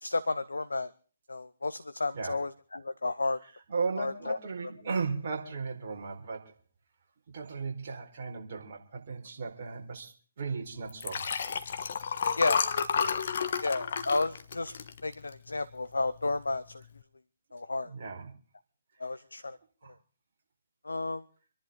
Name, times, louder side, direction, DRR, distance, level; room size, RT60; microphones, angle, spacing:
voice 1, 0.0-0.9 1.3-3.4 4.0-4.4 12.4-12.6 13.6-14.7 15.0-16.6 17.5-17.9 19.0-19.6 20.9-21.2, left 3 dB, 75° left, 14 dB, 0.8 m, -32 dB
voice 2, 3.4-6.5 7.3-11.2 17.8-18.3 19.8-19.9, right 4 dB, 45° right, 1 dB, 4.6 m, -36 dB
Liquid, 10.9-15.5 16.0-16.3 16.5-16.6, left 6 dB, 50° left, 1.4 m, -31 dB
27.0 x 11.0 x 3.8 m, 0.42 s
figure-of-eight pair, 135°, 0 cm